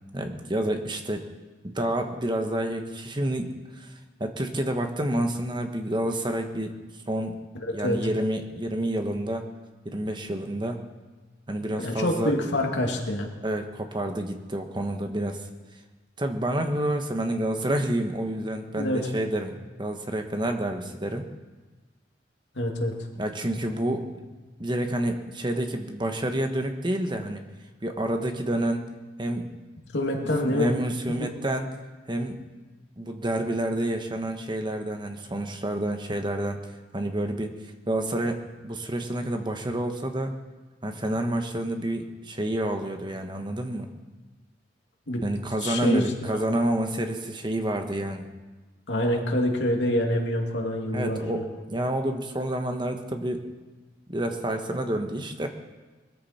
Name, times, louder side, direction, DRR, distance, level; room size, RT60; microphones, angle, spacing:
voice 1, 0.1-1.2 1.6-3.9 4.2-6.8 7.1-7.3 7.7-9.4 9.8-10.9 11.5-12.3 13.4-15.5 16.2-21.3 23.2-24.1 24.6-27.4 27.8-28.9 29.2-29.5 30.2-31.7 32.1-32.4 33.0-36.6 36.9-37.5 37.9-40.3 40.8-43.9 45.2-48.3 49.1-49.2 50.9-53.4 54.1-55.5, right 1 dB, 25° right, 5 dB, 1.3 m, -29 dB
voice 2, 7.6-8.0 11.8-13.3 18.8-19.1 22.5-22.9 29.9-30.7 31.2-31.3 45.1-45.2 45.6-46.1 48.9-51.4, left 1 dB, 70° left, 1 dB, 2.4 m, -26 dB
21.0 x 14.0 x 4.4 m, 1.3 s
head